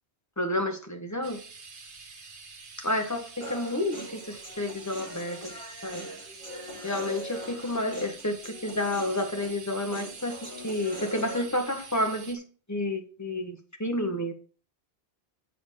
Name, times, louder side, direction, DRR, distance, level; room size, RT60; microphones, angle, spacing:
voice 1, 0.4-1.4 2.8-5.4 5.8-6.0 6.8-12.4 12.7-14.3, left 1 dB, 15° left, 4 dB, 1.5 m, -30 dB
sound 1, 1.2-12.4, right 4 dB, 75° right, 1.5 m, -47 dB
Human voice, 3.4-11.4, equal, 25° right, 5.8 m, -42 dB
8.1 x 4.6 x 6.8 m, 0.39 s
omnidirectional pair, 1.2 m